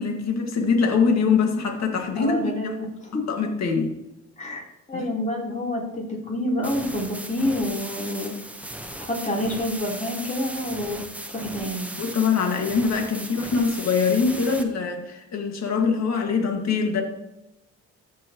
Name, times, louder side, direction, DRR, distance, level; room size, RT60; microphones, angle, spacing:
voice 1, 0.0-2.7 3.3-4.0 4.9-5.1 12.0-17.0, left 5 dB, 60° left, 2 dB, 2.0 m, -23 dB
voice 2, 2.2-3.2 4.4-8.3 9.0-11.0 11.3-11.8, left 1 dB, 25° left, -3 dB, 3.7 m, -28 dB
sound 1, 6.6-14.6, right 1 dB, 5° right, 1.0 m, -37 dB
14.5 x 6.3 x 3.0 m, 0.88 s
cardioid pair, 90°, 30 cm